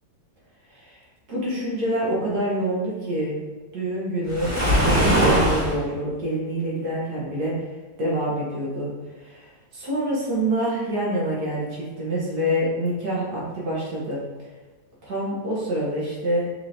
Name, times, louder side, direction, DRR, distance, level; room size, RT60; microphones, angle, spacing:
voice 1, 1.3-3.3 3.7-7.5 8.0-8.9 9.2-14.2 15.0-16.5, right 1 dB, 70° right, -6 dB, 1.6 m, -26 dB
Waves surf, 4.3-5.8, equal, 10° right, 1.2 m, -20 dB
6.2 x 3.0 x 2.7 m, 1.2 s
omnidirectional pair, 1.8 m